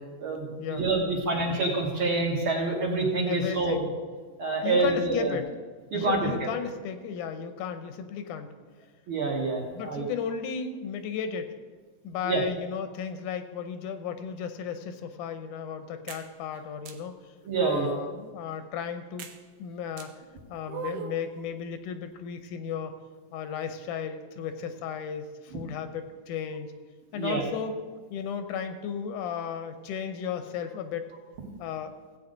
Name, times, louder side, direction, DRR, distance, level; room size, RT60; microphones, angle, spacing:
voice 1, 0.2-3.8 4.4-5.4 5.9-6.5 9.1-10.1 12.2-12.4 17.5-17.9 27.2-27.4, right 3 dB, 50° right, -2 dB, 2.1 m, -27 dB
voice 2, 3.3-4.0 4.6-5.5 5.9-8.5 9.7-11.5 12.0-17.2 17.6-19.3 19.6-20.2 20.5-22.9 23.3-26.7 27.1-27.8 28.1-31.1 31.6-31.9, left 7 dB, 85° left, 8 dB, 2.3 m, -34 dB
sound 1, 16.1-16.3 16.9-17.0 17.6-18.1 19.2-19.4 20.0-20.1 20.7-21.2, right 7 dB, 75° right, 1.5 m, -37 dB
16.0 x 8.3 x 3.9 m, 1.4 s
omnidirectional pair, 3.5 m